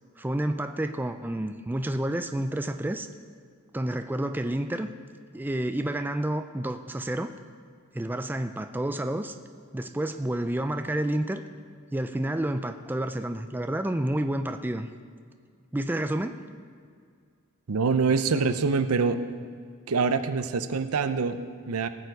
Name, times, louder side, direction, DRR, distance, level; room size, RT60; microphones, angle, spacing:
voice 1, 0.2-3.1 3.7-4.9 5.3-7.3 7.9-9.3 9.7-11.4 11.9-14.9 15.7-16.4, right 1 dB, 10° right, 7 dB, 0.4 m, -29 dB
voice 2, 17.7-19.2 19.9-21.9, right 4 dB, 75° right, 10 dB, 0.6 m, -25 dB
18.5 x 6.8 x 4.8 m, 2.1 s
head